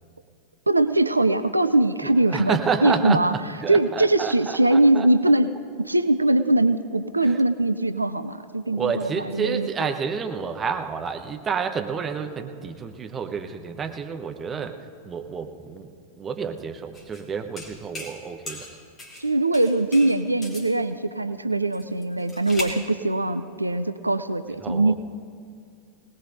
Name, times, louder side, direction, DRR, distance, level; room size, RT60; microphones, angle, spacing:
voice 1, 0.7-3.3 3.7-9.7 19.2-25.0, right 2 dB, 85° right, 11 dB, 0.4 m, -21 dB
voice 2, 2.0-5.1 7.2-7.4 8.7-14.8 15.0-15.9 16.2-18.7 24.6-25.0, right 6 dB, 20° right, 6 dB, 0.9 m, -30 dB
sound 1, 16.9-17.2 17.6-18.2 18.5-19.3 19.5-20.7 21.7-22.8, left 1 dB, 20° left, 3.0 m, -38 dB
21.5 x 19.0 x 2.6 m, 2.4 s
figure-of-eight pair, 90°, 0 cm